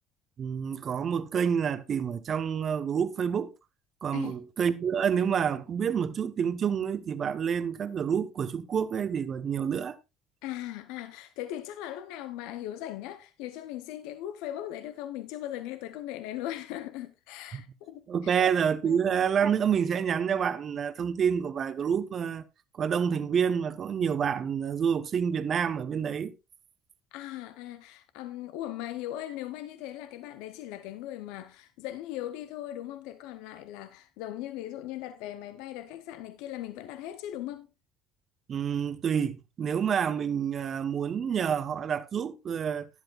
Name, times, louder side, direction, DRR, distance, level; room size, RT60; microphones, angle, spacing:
voice 1, 0.4-3.5 4.0-10.0 17.5-17.6 18.1-22.4 22.8-26.3 38.5-42.9, right 7 dB, 45° right, 0.9 m, -28 dB
voice 2, 10.4-18.4 18.8-19.1 27.1-37.7, left 13 dB, 75° left, 0.7 m, -39 dB
12.0 x 10.5 x 2.4 m
hypercardioid pair, 70°, 0 cm